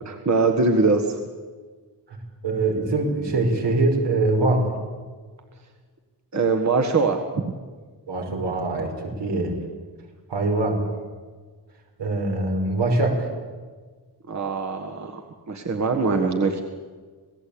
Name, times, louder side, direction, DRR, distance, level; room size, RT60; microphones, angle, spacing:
voice 1, 0.0-1.2 6.3-7.5 14.3-15.2 15.5-16.6, right 3 dB, 40° right, 4 dB, 1.6 m, -22 dB
voice 2, 2.4-4.7 8.1-9.5 10.3-10.8 12.0-13.3, right 2 dB, 80° right, 1 dB, 5.5 m, -23 dB
27.5 x 18.5 x 8.7 m, 1.5 s
wide cardioid pair, 175°, 41 cm